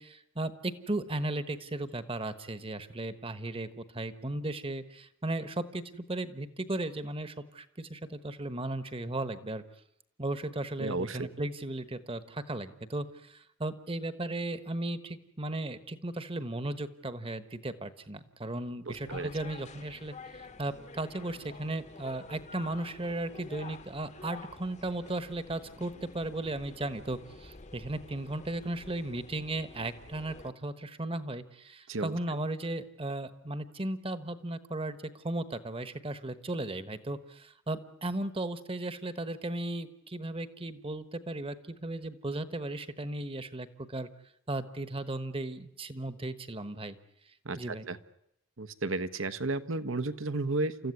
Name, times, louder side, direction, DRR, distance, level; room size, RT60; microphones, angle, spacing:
voice 1, 0.0-9.6 10.2-44.1 44.5-47.0 47.6-47.9, right 2 dB, 25° right, 12 dB, 1.2 m, -36 dB
voice 2, 10.8-11.3 18.9-19.3 31.9-32.2 47.4-48.0 48.6-50.9, right 2 dB, 70° right, 12 dB, 1.2 m, -33 dB
sound 1, 18.9-30.5, left 3 dB, 35° left, 1.0 m, -49 dB
29.5 x 14.0 x 9.7 m, 0.75 s
head